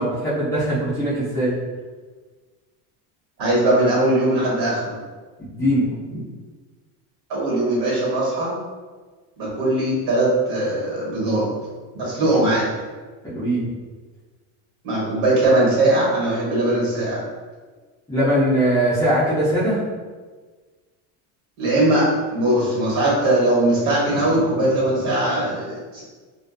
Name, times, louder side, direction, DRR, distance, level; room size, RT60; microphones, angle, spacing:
voice 1, 0.0-1.5 5.4-5.9 13.2-13.7 18.1-19.8, right 1 dB, 10° left, -11 dB, 0.3 m, -21 dB
voice 2, 3.4-5.0 7.3-8.6 9.4-11.5 11.9-12.7 14.8-17.2 21.6-26.0, right 1 dB, 65° right, -5 dB, 1.2 m, -20 dB
2.4 x 2.2 x 2.4 m, 1.4 s
cardioid pair, 140°, 43 cm